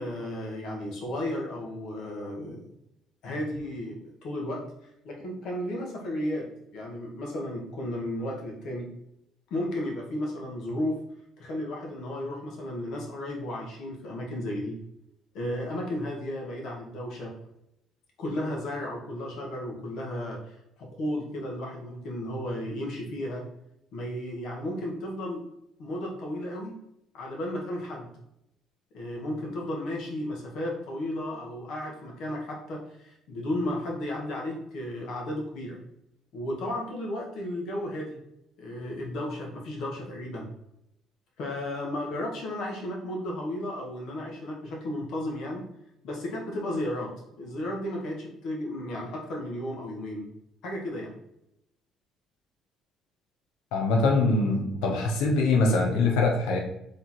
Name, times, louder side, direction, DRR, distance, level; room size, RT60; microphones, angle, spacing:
voice 1, 0.0-2.6 3.2-4.6 5.0-6.5 6.7-8.9 9.5-11.0 11.4-14.8 15.3-17.3 18.2-23.4 23.9-25.5 25.8-26.8 27.1-28.1 28.9-35.8 36.3-38.2 38.6-40.5 41.4-45.7 46.0-47.1 47.4-50.3 50.6-51.1, left 1 dB, 70° left, -1 dB, 1.4 m, -34 dB
voice 2, 53.7-56.6, left 3 dB, 85° left, 1 dB, 0.8 m, -23 dB
3.7 x 3.3 x 4.3 m, 0.81 s
cardioid pair, 105°, 0 cm